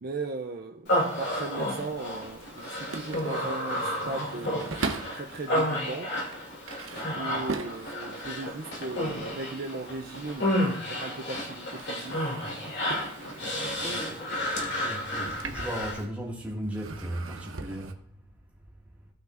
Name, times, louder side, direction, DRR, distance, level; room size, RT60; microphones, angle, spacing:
voice 1, 0.0-6.1 7.1-12.3 13.9-14.3, right 3 dB, 45° right, 0.5 m, -38 dB
Human voice, 0.9-16.0, equal, 55° left, 2.5 m, -31 dB
sound 1, 1.9-5.3 5.9-11.2 11.4-16.3 16.6-17.9, right 3 dB, 70° right, 0.9 m, -41 dB
voice 2, 13.8-18.0, right 1 dB, 5° right, 1.9 m, -37 dB
17.0 x 5.9 x 2.5 m
head